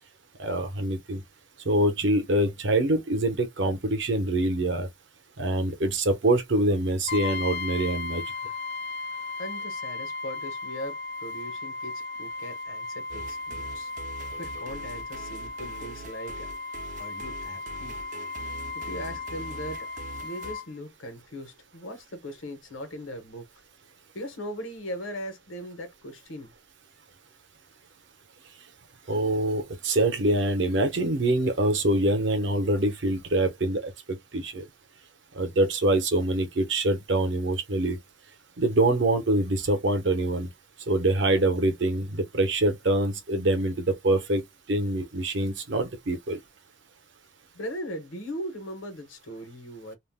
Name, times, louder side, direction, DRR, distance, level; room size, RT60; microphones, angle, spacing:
voice 1, 0.4-1.2 1.7-4.9 5.4-8.2 29.1-33.9 34.3-34.6 35.3-38.0 38.6-40.5 40.9-44.4 44.7-46.4, right 1 dB, 65° right, 0.8 m, -25 dB
Brass instrument, 7.1-20.7, left 3 dB, 55° left, 0.6 m, -36 dB
voice 2, 9.4-13.9 14.4-16.5 17.0-18.0 18.7-19.9 20.2-23.5 24.1-26.5 47.5-50.0, equal, 80° left, 1.0 m, -39 dB
sound 1, 13.1-20.5, right 3 dB, 40° right, 0.4 m, -44 dB
2.5 x 2.0 x 3.5 m
head